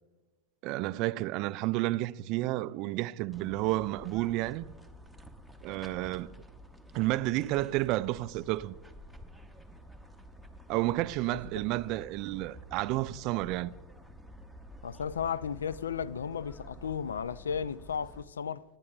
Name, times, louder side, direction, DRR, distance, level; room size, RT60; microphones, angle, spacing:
voice 1, 0.6-4.7 5.6-6.3 6.9-8.8 10.7-13.7, right 17 dB, 45° right, 0.3 m, -31 dB
sound 1, 3.3-18.2, equal, ahead, 0.9 m, -51 dB
voice 2, 14.8-18.6, left 7 dB, 70° left, 0.3 m, -34 dB
18.5 x 10.0 x 2.3 m
figure-of-eight pair, 85°, 0 cm